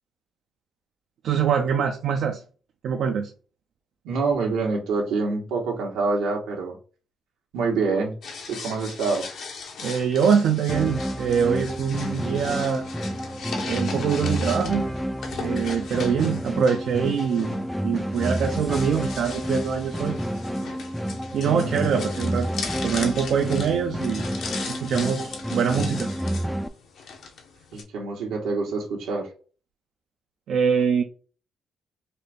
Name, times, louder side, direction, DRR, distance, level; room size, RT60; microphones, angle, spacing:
voice 1, 1.2-2.4 2.8-3.3 9.8-12.8 13.6-14.9 15.4-17.5 17.8-20.2 21.3-22.5 22.8-24.3 24.8-26.1 30.5-31.0, right 7 dB, 70° right, 4 dB, 0.6 m, -24 dB
voice 2, 4.0-6.8 7.5-8.1 8.5-9.3 21.6-21.9 27.7-29.3, right 4 dB, 90° right, 0 dB, 1.4 m, -26 dB
sound 1, 8.2-27.8, left 5 dB, 70° left, 1.1 m, -38 dB
sound 2, 10.7-26.7, equal, ahead, 0.4 m, -29 dB
4.2 x 2.6 x 3.6 m, 0.37 s
cardioid pair, 90°, 0 cm